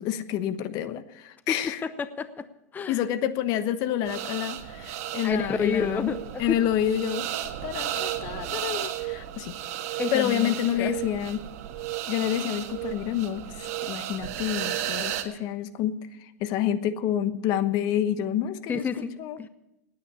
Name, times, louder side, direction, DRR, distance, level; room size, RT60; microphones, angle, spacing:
voice 1, 0.0-1.8 2.9-6.1 6.4-7.3 7.6-9.5 10.1-11.4 12.1-18.8 19.2-19.4, left 10 dB, 50° left, 12 dB, 1.1 m, -28 dB
voice 2, 2.0-2.5 2.7-3.0 5.2-6.2 6.5-6.6 8.5-8.6 10.0-10.5 10.8-10.9 18.7-19.5, left 5 dB, 20° left, 12 dB, 0.8 m, -29 dB
sound 1, 4.0-15.2, right 11 dB, 65° right, 1.8 m, -34 dB
18.5 x 9.3 x 6.9 m, 0.89 s
hypercardioid pair, 105°, 8 cm